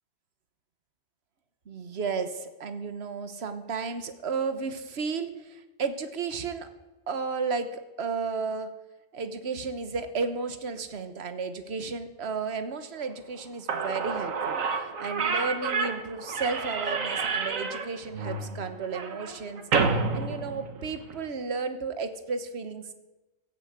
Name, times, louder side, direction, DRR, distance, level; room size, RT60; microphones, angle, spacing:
voice 1, 1.7-6.7 7.1-8.7 9.1-19.6 20.1-22.9, right 5 dB, 55° right, 9 dB, 1.4 m, -33 dB
Slam / Squeak, 13.4-13.5 13.7-21.2, right 4 dB, 85° right, 1.7 m, -29 dB
16.5 x 9.0 x 8.1 m, 1.1 s
omnidirectional pair, 1.3 m